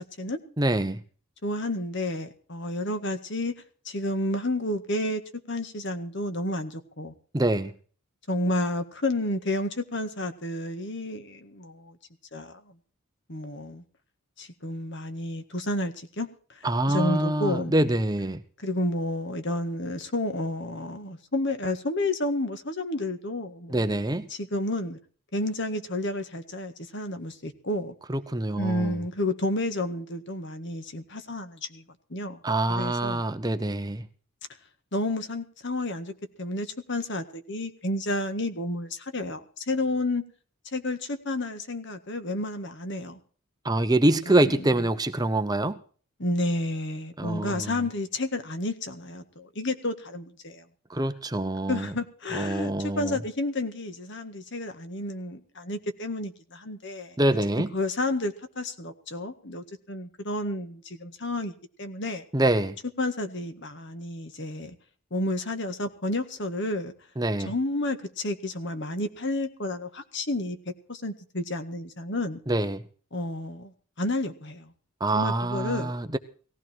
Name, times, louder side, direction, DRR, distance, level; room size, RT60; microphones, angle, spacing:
voice 1, 0.6-1.0 7.3-7.7 16.6-18.4 23.7-24.3 28.1-29.0 32.4-34.1 43.6-45.8 47.2-47.8 50.9-51.9 52.3-53.2 57.2-57.7 62.3-62.8 67.2-67.5 72.5-72.8 75.0-76.2, right 1 dB, 15° right, 0.8 m, -25 dB
voice 2, 1.4-3.5 3.9-5.2 5.5-7.1 8.3-12.0 12.3-12.5 13.3-13.8 14.4-16.6 16.9-17.7 18.6-23.8 24.3-25.0 25.3-27.9 28.6-31.8 32.1-32.4 32.7-33.2 34.9-36.1 36.4-40.2 40.7-43.2 44.3-44.8 46.2-50.6 51.7-57.2 57.7-62.2 63.0-64.8 65.1-66.9 67.4-72.4 73.1-74.7 75.1-76.0, left 1 dB, 50° left, 1.8 m, -31 dB
18.5 x 15.0 x 4.6 m
head